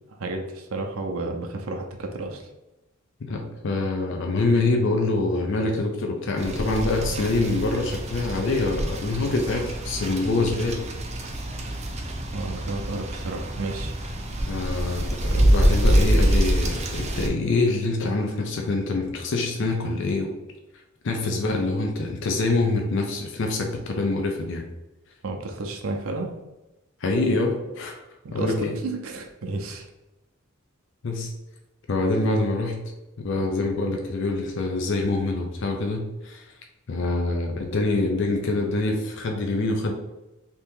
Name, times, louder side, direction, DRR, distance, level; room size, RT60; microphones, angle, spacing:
voice 1, 0.1-2.4 12.3-13.9 25.2-26.3 28.2-29.9, right 2 dB, 85° right, 3 dB, 0.5 m, -32 dB
voice 2, 3.2-10.8 14.5-20.3 21.0-24.7 27.0-28.0 28.3-28.8 31.0-31.3 31.9-32.8 33.2-36.5 36.9-39.9, left 2 dB, 60° left, 2 dB, 0.5 m, -25 dB
sound 1, 6.4-17.3, right 1 dB, 30° right, 0.5 m, -25 dB
2.9 x 2.7 x 3.5 m, 0.99 s
head